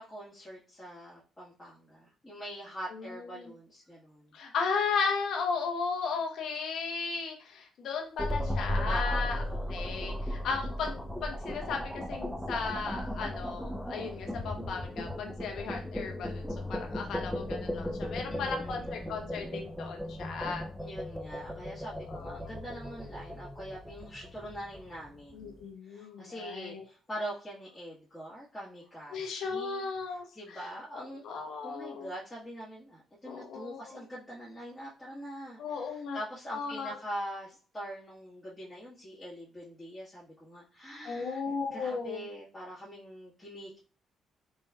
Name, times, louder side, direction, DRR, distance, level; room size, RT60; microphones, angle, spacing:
voice 1, 0.0-4.3 8.8-9.6 18.3-19.1 20.8-29.8 30.3-31.2 31.6-41.4 41.7-43.8, equal, 20° left, -8 dB, 1.7 m, -43 dB
voice 2, 2.9-3.5 4.3-16.4 16.7-20.6 21.9-22.4 25.3-26.8 29.1-32.1 33.2-34.0 35.6-36.2 36.5-37.0 41.0-42.3, left 5 dB, 70° left, 2 dB, 1.0 m, -35 dB
sound 1, 8.2-25.4, left 1 dB, 5° left, 0.6 m, -36 dB
4.4 x 3.0 x 2.3 m, 0.37 s
supercardioid pair, 55°, 0 cm